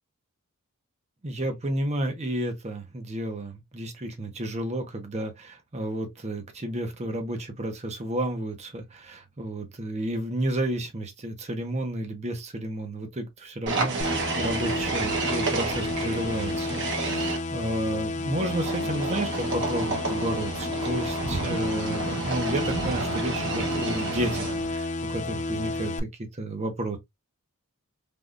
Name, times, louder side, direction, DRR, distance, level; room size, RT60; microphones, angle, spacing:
voice 1, 1.2-27.0, right 1 dB, 30° right, 0.7 m, -31 dB
sound 1, 13.7-17.4 18.4-24.8, right 3 dB, 55° right, 1.0 m, -30 dB
sound 2, 14.0-26.0, left 2 dB, 30° left, 0.3 m, -31 dB
3.5 x 2.3 x 2.4 m
head